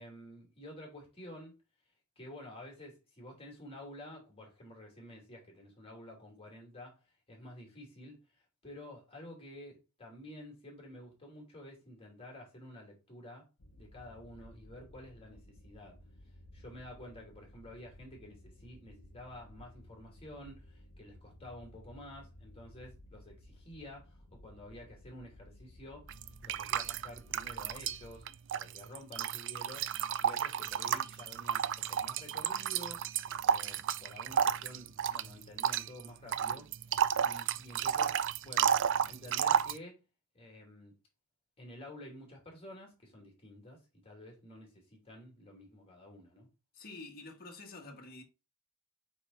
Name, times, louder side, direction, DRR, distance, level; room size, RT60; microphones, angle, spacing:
voice 1, 0.0-1.6 2.2-6.9 7.3-8.2 8.6-13.5 13.8-16.0 16.5-26.1 26.4-28.2 28.5-29.9 30.2-33.0 33.4-38.8 39.1-40.0 40.3-40.9 41.6-46.5, left 1 dB, 25° left, 2.7 m, -50 dB
sound 1, 13.6-28.3, left 1 dB, 80° left, 1.1 m, -56 dB
sound 2, 26.1-28.0 28.3-39.8, right 8 dB, 60° right, 0.4 m, -32 dB
voice 2, 46.7-48.2, left 3 dB, 45° left, 1.6 m, -48 dB
5.4 x 4.4 x 3.9 m
head